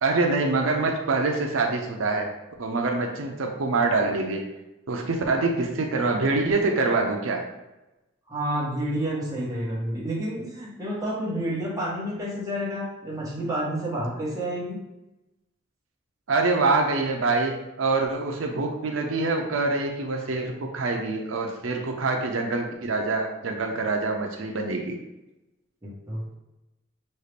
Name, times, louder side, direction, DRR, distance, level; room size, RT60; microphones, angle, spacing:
voice 1, 0.0-2.3 2.6-4.5 4.9-7.4 16.3-25.0, right 3 dB, 85° right, 2 dB, 0.6 m, -25 dB
voice 2, 8.3-14.8 18.5-18.6 25.8-26.2, right 1 dB, 20° right, -6 dB, 1.2 m, -29 dB
5.3 x 2.4 x 3.3 m, 1.0 s
head